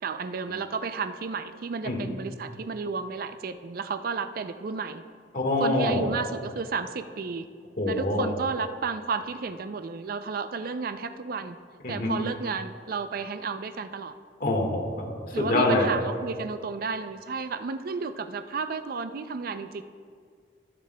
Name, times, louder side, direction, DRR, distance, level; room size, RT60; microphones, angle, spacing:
voice 1, 0.0-5.0 5.6-7.5 7.9-11.6 11.9-14.1 15.3-19.8, right 4 dB, 55° right, 10 dB, 0.4 m, -32 dB
voice 2, 5.3-6.0 7.8-8.3 11.8-12.2 14.4-15.9, left 2 dB, 55° left, 1 dB, 1.6 m, -25 dB
21.5 x 8.4 x 2.2 m, 2.1 s
head